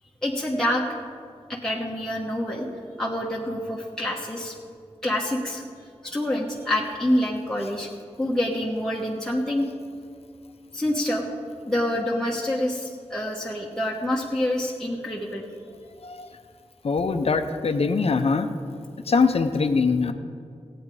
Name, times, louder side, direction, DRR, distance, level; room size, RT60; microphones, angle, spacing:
voice 1, 0.2-0.8 1.5-2.7 3.0-4.5 5.0-5.6 6.0-7.9 8.2-9.7 10.7-11.2 11.6-15.4, left 1 dB, 5° left, -4 dB, 1.1 m, -26 dB
voice 2, 16.8-18.5 19.1-20.1, left 4 dB, 60° left, 8 dB, 0.7 m, -22 dB
16.5 x 8.8 x 4.9 m, 2.3 s
wide cardioid pair, 115°, 11 cm